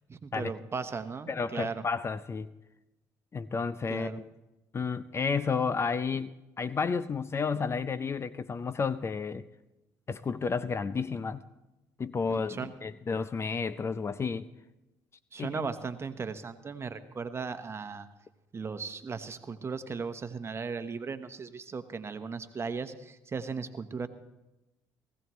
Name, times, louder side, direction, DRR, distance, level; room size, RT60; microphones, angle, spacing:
voice 1, 0.1-1.8 3.9-4.2 12.3-12.7 15.3-18.1 18.5-24.1, right 5 dB, 30° right, 10 dB, 1.1 m, -37 dB
voice 2, 1.3-2.5 3.3-4.3 4.7-9.5 10.1-11.4 12.0-14.5 15.4-15.7, left 5 dB, 30° left, 15 dB, 0.5 m, -31 dB
18.5 x 15.5 x 3.1 m, 0.99 s
supercardioid pair, 75°, 8 cm